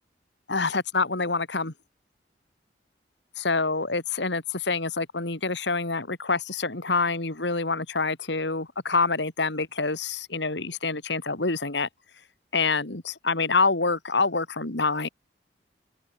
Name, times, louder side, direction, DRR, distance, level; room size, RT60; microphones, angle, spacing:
voice 1, 0.5-1.7 3.4-11.9 12.5-15.1, left 4 dB, 75° left, 2.5 m, -26 dB
open air
head